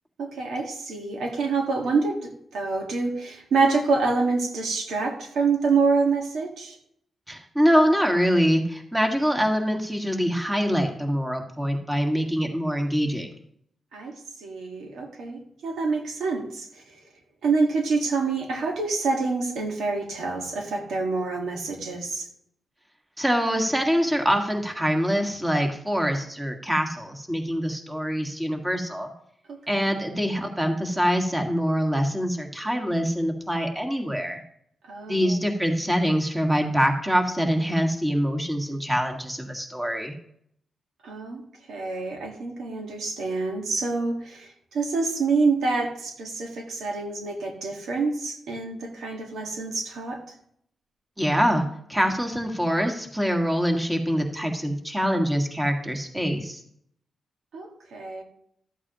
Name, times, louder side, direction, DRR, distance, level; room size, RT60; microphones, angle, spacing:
voice 1, 0.2-6.8 13.9-17.0 17.4-22.3 29.5-29.9 34.8-35.4 41.0-41.4 41.7-50.3 57.5-58.2, right 4 dB, 90° right, 2 dB, 1.6 m, -27 dB
voice 2, 7.3-13.3 23.2-29.1 29.7-34.4 35.1-40.1 51.2-51.6 51.9-56.6, equal, 10° right, 3 dB, 1.7 m, -24 dB
12.5 x 8.3 x 3.0 m, 0.68 s
cardioid pair, 80°, 0 cm